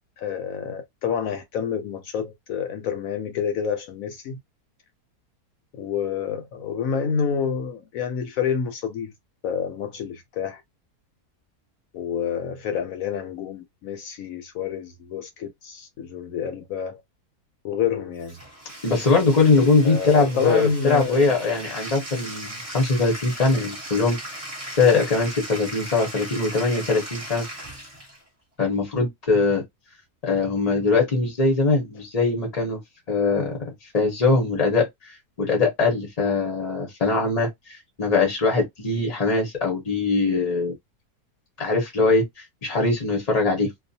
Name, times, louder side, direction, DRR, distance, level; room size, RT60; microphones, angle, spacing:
voice 1, 0.2-4.4 5.8-9.1 9.4-10.6 11.9-17.0 17.6-18.4 19.8-21.4, left 7 dB, 70° left, 0.9 m, -28 dB
Bathtub (filling or washing), 18.2-28.2, right 1 dB, 25° right, 1.0 m, -38 dB
voice 2, 18.8-27.5 28.6-29.6 30.2-32.8 33.1-33.6 33.9-40.7 41.6-42.2 42.6-43.7, left 3 dB, 40° left, 0.6 m, -22 dB
2.4 x 2.3 x 2.6 m
omnidirectional pair, 1.7 m